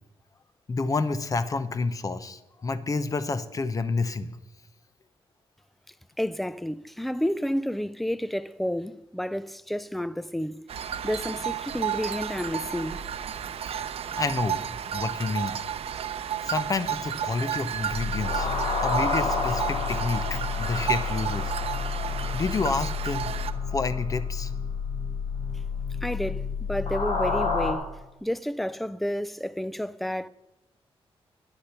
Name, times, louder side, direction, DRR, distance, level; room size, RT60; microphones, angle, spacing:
voice 1, 0.7-4.3 13.6-13.8 14.2-14.6 14.9-15.6 16.4-18.5 18.8-21.5 22.3-23.3 23.7-24.5, left 3 dB, 35° left, 0.7 m, -29 dB
voice 2, 6.2-10.6 11.0-13.0 26.0-27.9 28.2-30.3, equal, ahead, 0.3 m, -30 dB
sound 1, 10.7-23.5, right 9 dB, 75° right, 0.7 m, -32 dB
sound 2, 17.9-27.7, left 5 dB, 75° left, 3.1 m, -29 dB
9.9 x 9.9 x 5.7 m
wide cardioid pair, 150°, 10 cm